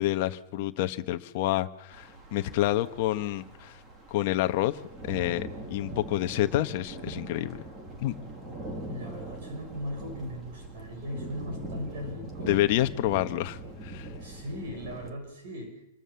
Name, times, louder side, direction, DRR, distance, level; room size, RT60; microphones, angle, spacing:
voice 1, 0.0-3.7 4.1-4.8 5.0-7.6 8.0-8.1 12.4-14.1, left 14 dB, 35° left, 9 dB, 1.3 m, -28 dB
sound 1, 1.9-15.1, right 1 dB, 10° right, 2.1 m, -41 dB
voice 2, 8.9-12.5 14.2-15.8, equal, 45° right, 4 dB, 6.2 m, -38 dB
27.5 x 23.0 x 7.1 m, 0.84 s
hypercardioid pair, 175°, 0 cm